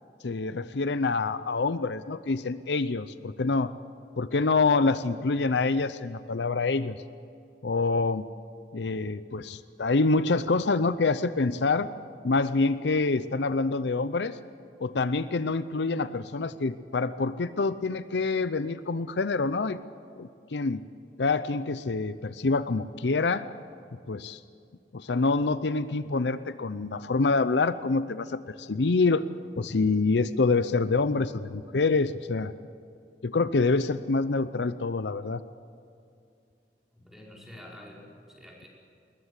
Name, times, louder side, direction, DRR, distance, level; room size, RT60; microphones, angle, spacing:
voice 1, 0.2-3.7 4.2-7.0 7.6-8.3 8.7-11.9 12.2-14.4 14.8-19.8 20.2-20.8 21.2-23.4 24.1-24.4 24.9-29.2 29.6-32.5 33.2-35.4, left 3 dB, 70° left, 13 dB, 0.6 m, -26 dB
voice 2, 36.9-38.7, left 1 dB, ahead, -3 dB, 4.9 m, -48 dB
21.0 x 20.0 x 8.2 m, 2.4 s
head